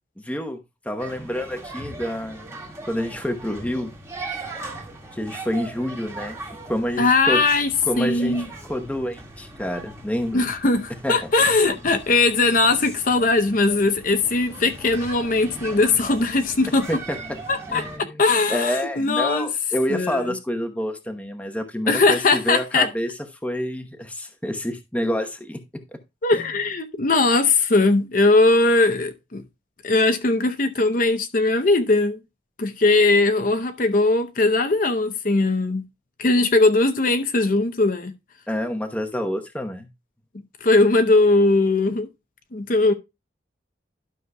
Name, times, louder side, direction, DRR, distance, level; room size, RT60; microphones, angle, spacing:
voice 1, 0.2-0.6 0.8-2.6 2.9-3.9 4.7-4.8 5.1-6.4 6.6-7.4 7.8-8.4 8.7-10.5 11.0-11.3 16.9-17.2 17.7-18.2 18.5-23.1 23.4-26.0 26.3-26.4 38.5-39.9, equal, 5° left, 0.9 m, -28 dB
sound 1, 1.0-18.0, right 2 dB, 15° right, 1.7 m, -39 dB
voice 2, 7.0-7.7 8.0-8.5 10.3-16.9 17.5-19.5 19.9-20.2 21.9-22.9 26.2-29.4 29.8-32.2 32.6-35.8 36.2-38.1 40.6-42.1 42.5-42.9, left 3 dB, 45° left, 0.7 m, -19 dB
12.0 x 6.3 x 2.2 m
head